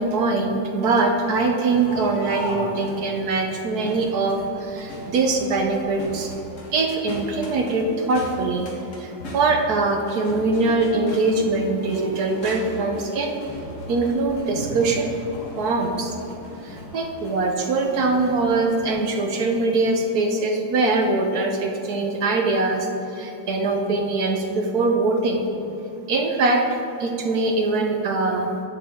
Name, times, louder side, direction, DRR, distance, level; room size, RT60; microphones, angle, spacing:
voice 1, 0.0-6.3 6.7-8.7 9.0-13.3 13.9-15.1 15.6-16.2 16.6-25.4 26.1-28.5, right 3 dB, 60° right, 2 dB, 1.1 m, -22 dB
Crowd, 1.1-18.9, equal, 40° left, 1.7 m, -38 dB
11.0 x 7.1 x 3.6 m, 2.9 s
omnidirectional pair, 2.2 m